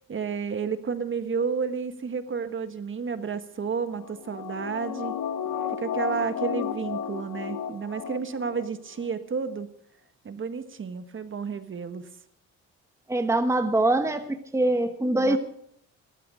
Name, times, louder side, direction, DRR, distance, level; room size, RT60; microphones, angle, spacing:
voice 1, 0.1-5.1 5.8-9.7 10.2-12.1 15.2-15.4, right 5 dB, 40° right, 10 dB, 1.5 m, -31 dB
sound 1, 3.9-8.7 9.0-9.1, left 8 dB, 75° left, 1.3 m, -33 dB
voice 2, 13.1-15.4, right 2 dB, 10° right, 8 dB, 1.2 m, -23 dB
17.5 x 12.5 x 5.0 m, 0.70 s
cardioid pair, 90°, 30 cm